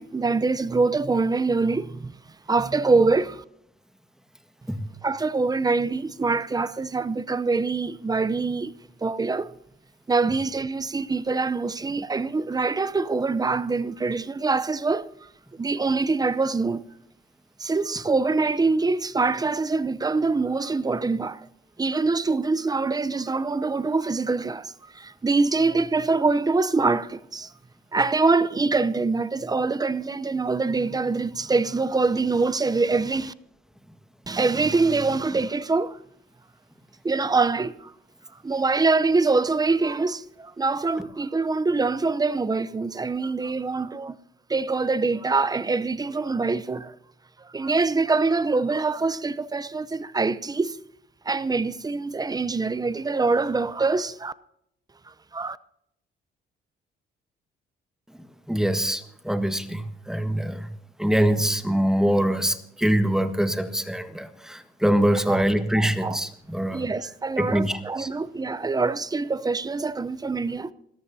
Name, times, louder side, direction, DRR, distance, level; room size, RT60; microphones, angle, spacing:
voice 1, 0.0-2.2 2.5-3.4 5.0-8.7 9.0-9.5 10.1-15.1 15.5-16.8 17.6-21.5 21.8-27.5 27.9-33.3 34.3-36.0 37.0-37.9 38.4-44.2 44.5-46.9 47.4-50.8 51.2-54.3 55.3-55.6 65.3-65.4 65.8-66.2 66.7-70.7, right 3 dB, 20° right, 0.7 m, -24 dB
voice 2, 58.1-60.7 61.0-66.9 67.4-68.1, equal, 5° right, 1.6 m, -24 dB
27.5 x 14.0 x 2.8 m
cardioid pair, 90°, 20 cm